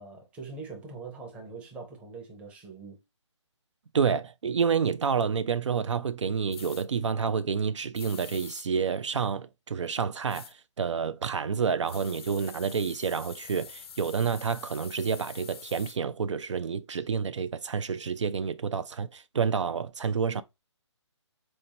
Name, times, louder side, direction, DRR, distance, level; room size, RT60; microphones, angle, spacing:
voice 1, 0.0-3.0, right 4 dB, 10° right, 0.6 m, -43 dB
voice 2, 3.9-20.4, right 6 dB, 75° right, 0.4 m, -29 dB
sound 1, 6.5-6.8 7.9-8.7 10.3-10.5 11.8-16.0, left 7 dB, 55° left, 0.4 m, -46 dB
4.4 x 2.8 x 2.7 m
figure-of-eight pair, 150°, 16 cm